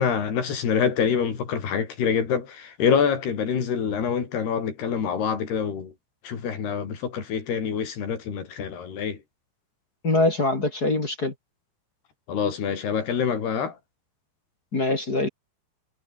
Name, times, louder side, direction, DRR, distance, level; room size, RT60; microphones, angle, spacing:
voice 1, 0.0-5.9 6.2-9.2 12.3-13.8, left 7 dB, 65° left, 6.3 m, -26 dB
voice 2, 10.0-11.3 14.7-15.3, left 2 dB, 25° left, 3.1 m, -23 dB
omnidirectional pair, 5.0 m